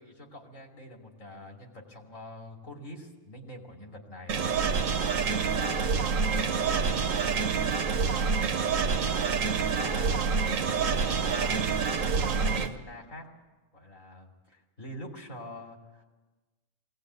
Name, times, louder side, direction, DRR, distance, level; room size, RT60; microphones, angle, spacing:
voice 1, 0.0-4.4 5.4-6.0 6.2-9.1 9.6-11.7 12.2-13.3 13.7-16.0, left 1 dB, 80° left, 1 dB, 3.2 m, -45 dB
sound 1, 4.3-12.7, right 5 dB, 80° right, 1.4 m, -27 dB
21.5 x 17.5 x 8.2 m, 1.2 s
omnidirectional pair, 1.4 m